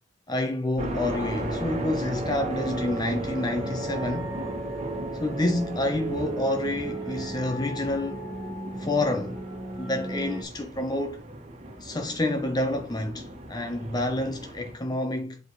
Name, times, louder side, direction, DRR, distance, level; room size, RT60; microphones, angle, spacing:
voice 1, 0.3-4.4 5.2-8.2 8.8-9.4 9.8-11.2 11.8-15.4, left 1 dB, 25° left, 0.8 m, -28 dB
sound 1, 0.8-14.8, right 1 dB, 35° right, 1.6 m, -38 dB
sound 2, 1.1-10.4, right 2 dB, 15° right, 2.6 m, -35 dB
8.2 x 4.3 x 3.1 m
head